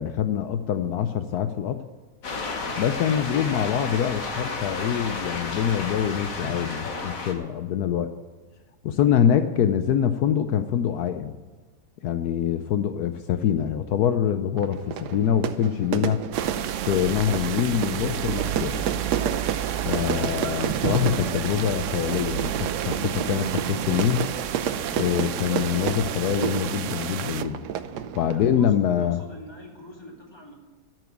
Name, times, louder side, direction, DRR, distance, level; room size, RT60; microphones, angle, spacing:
voice 1, 0.0-1.8 2.8-8.1 8.8-11.4 12.0-16.2 16.9-18.8 19.9-24.2 24.9-27.6 28.1-29.2, left 9 dB, 75° left, 9 dB, 1.2 m, -24 dB
sound 1, 2.2-7.3, left 3 dB, 60° left, 1.8 m, -32 dB
Fire / Fireworks, 14.6-28.6, right 8 dB, 90° right, 1.3 m, -31 dB
sound 2, 16.3-27.4, right 10 dB, 70° right, 0.8 m, -30 dB
voice 2, 28.2-30.5, left 1 dB, 15° left, -1 dB, 2.4 m, -45 dB
13.5 x 6.1 x 9.2 m, 1.3 s
omnidirectional pair, 1.7 m